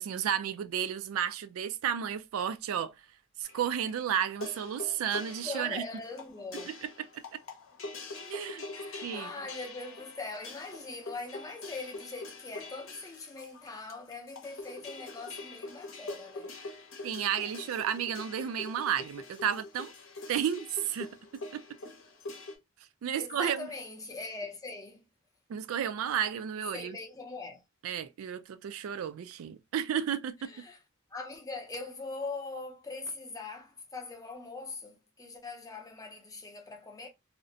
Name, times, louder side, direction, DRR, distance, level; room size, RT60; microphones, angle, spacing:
voice 1, 0.0-2.9 3.4-5.8 6.7-6.9 7.3-7.4 8.2-8.6 9.0-9.3 17.0-19.9 20.3-21.1 21.5-21.6 23.0-23.7 25.5-27.0 27.8-30.5, right 9 dB, 80° right, 0.3 m, -32 dB
sound 1, 3.4-22.6, left 2 dB, 65° left, 0.7 m, -44 dB
voice 2, 5.4-6.8 8.7-16.6 23.1-25.0 26.7-27.6 30.5-30.8 31.1-37.1, left 3 dB, 15° left, 0.5 m, -41 dB
2.5 x 2.0 x 2.6 m
head